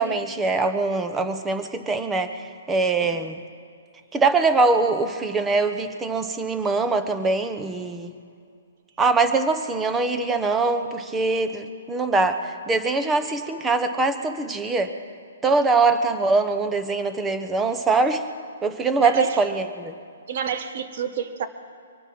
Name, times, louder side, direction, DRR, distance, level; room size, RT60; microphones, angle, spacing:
voice 1, 0.0-3.4 4.1-8.1 9.0-14.9 15.4-18.2 18.6-19.9, right 3 dB, 10° right, 9 dB, 1.0 m, -23 dB
voice 2, 19.0-19.4 20.3-21.5, right 8 dB, 55° right, 9 dB, 1.3 m, -29 dB
24.5 x 8.9 x 6.1 m, 2.3 s
hypercardioid pair, 150°, 0 cm